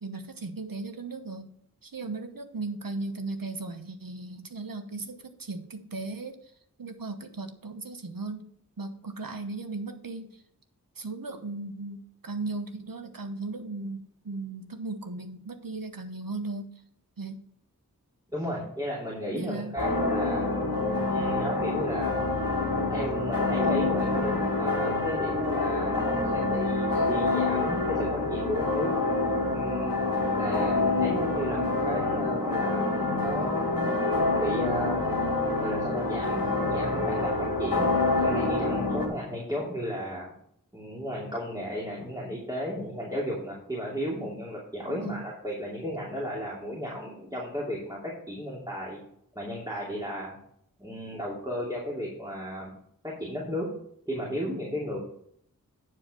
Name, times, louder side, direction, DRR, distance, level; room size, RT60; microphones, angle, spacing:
voice 1, 0.0-1.5 1.8-6.4 6.8-8.5 8.8-10.3 11.0-16.8 17.2-17.4 19.3-19.8 44.9-45.3, right 3 dB, 75° right, 7 dB, 1.1 m, -37 dB
voice 2, 18.3-20.6 21.1-22.3 22.9-28.9 29.5-30.0 30.4-34.0 34.4-35.1 35.6-37.9 38.2-40.3 40.7-49.0 49.3-50.4 50.8-52.7 53.0-53.7 54.1-55.0, equal, 10° right, -5 dB, 2.7 m, -34 dB
sound 1, 19.8-39.1, left 2 dB, 85° left, 2.0 m, -27 dB
9.7 x 4.7 x 6.1 m, 0.67 s
wide cardioid pair, 55°, 34 cm